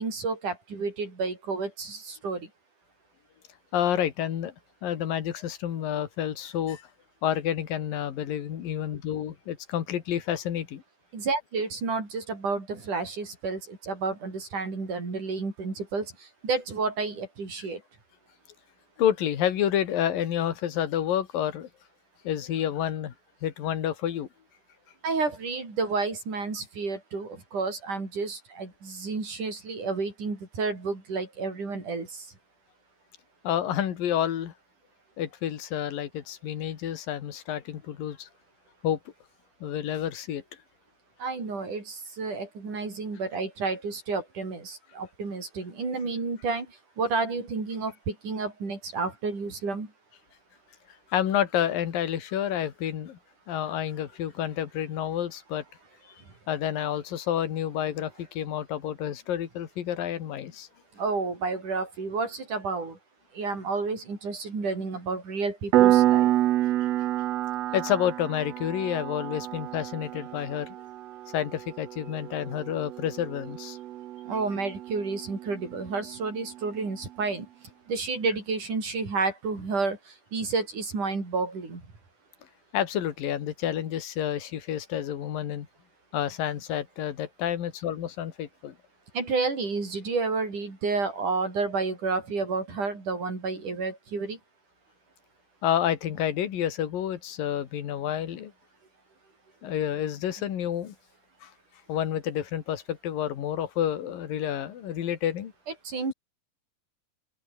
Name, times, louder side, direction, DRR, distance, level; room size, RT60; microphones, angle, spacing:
voice 1, 0.0-2.5 11.1-16.1 16.4-17.8 25.0-32.3 41.2-46.7 47.0-49.9 61.0-63.0 63.3-66.3 74.3-77.4 77.9-80.0 80.3-81.8 89.1-94.4 105.8-106.1, right 4 dB, 60° right, 8.5 m, -30 dB
voice 2, 3.7-4.5 4.8-6.9 7.2-10.8 19.0-21.7 22.3-23.1 23.4-24.3 33.4-34.5 35.2-38.3 38.8-39.0 39.6-40.4 51.1-53.2 53.5-55.6 56.5-60.7 67.7-70.8 71.3-73.8 82.7-85.7 86.1-88.8 95.6-98.5 99.6-100.9 101.4-101.5 101.9-105.5, left 10 dB, 75° left, 3.8 m, -29 dB
Piano, 65.7-76.1, right 14 dB, 80° right, 1.5 m, -28 dB
open air
omnidirectional pair, 4.1 m